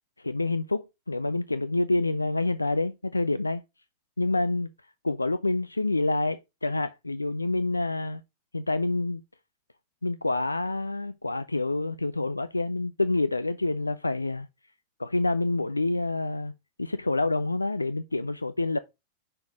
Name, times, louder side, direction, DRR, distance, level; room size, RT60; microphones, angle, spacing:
voice 1, 0.2-3.6 4.2-4.7 5.0-8.2 8.5-9.2 10.0-14.5 15.0-16.5 16.8-18.8, left 2 dB, 80° left, 0.3 m, -27 dB
5.7 x 4.4 x 4.9 m
figure-of-eight pair, 90°, 0 cm